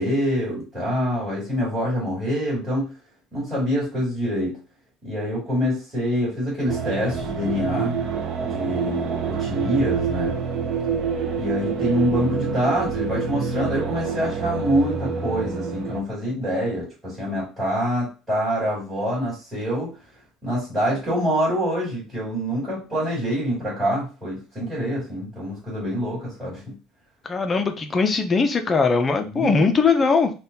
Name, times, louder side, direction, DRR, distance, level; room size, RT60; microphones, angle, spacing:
voice 1, 0.0-2.9 3.3-4.6 5.0-8.0 8.4-10.4 11.3-19.9 20.4-26.7 29.2-29.5, equal, 5° right, -8 dB, 2.2 m, -25 dB
sound 1, 6.7-16.0, right 6 dB, 40° right, 0.6 m, -27 dB
voice 2, 27.2-30.3, left 4 dB, 20° left, 7 dB, 0.5 m, -20 dB
4.0 x 2.3 x 3.9 m, 0.32 s
cardioid pair, 160°, 0 cm